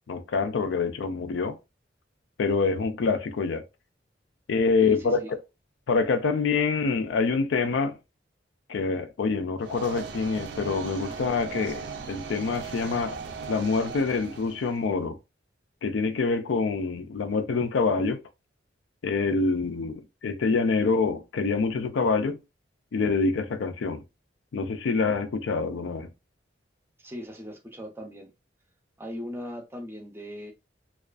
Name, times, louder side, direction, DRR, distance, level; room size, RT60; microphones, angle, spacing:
voice 1, 0.1-1.6 2.4-3.6 4.5-5.2 5.9-8.0 8.7-13.2 13.5-15.2 15.8-18.2 19.0-22.4 22.9-24.0 24.5-26.1, left 4 dB, 90° left, 0.4 m, -26 dB
voice 2, 4.8-5.3 27.0-28.3 29.0-30.5, left 1 dB, 15° right, 0.4 m, -38 dB
sound 1, 9.6-14.8, right 5 dB, 70° right, 0.5 m, -38 dB
2.4 x 2.3 x 2.3 m
head